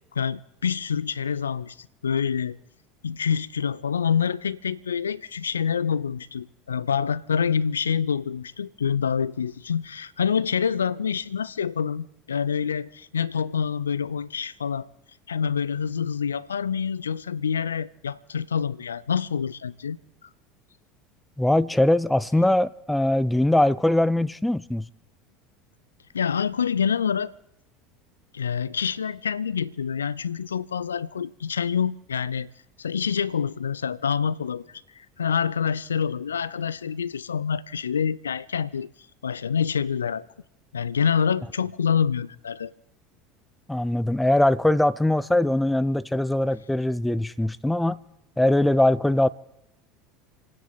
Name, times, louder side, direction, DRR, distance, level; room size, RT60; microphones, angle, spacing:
voice 1, 0.1-2.6 3.0-14.9 15.3-20.0 26.1-27.3 28.3-32.5 32.8-38.9 39.2-40.2 40.7-42.7, left 7 dB, 75° left, 0.5 m, -26 dB
voice 2, 21.4-24.9 43.7-48.0 48.4-49.3, left 1 dB, 5° left, 0.7 m, -21 dB
29.5 x 9.9 x 4.2 m
figure-of-eight pair, 70°, 0 cm